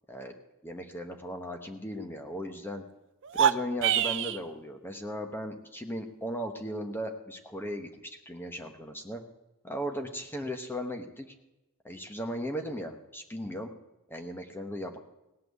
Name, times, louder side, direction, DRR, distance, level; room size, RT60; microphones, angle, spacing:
voice 1, 0.6-2.8 3.3-9.2 9.6-11.3 11.8-13.7 14.1-15.0, equal, 10° left, 5 dB, 1.0 m, -37 dB
sound 1, 3.2-4.4, right 9 dB, 55° right, 0.5 m, -25 dB
17.5 x 5.9 x 8.0 m, 0.99 s
head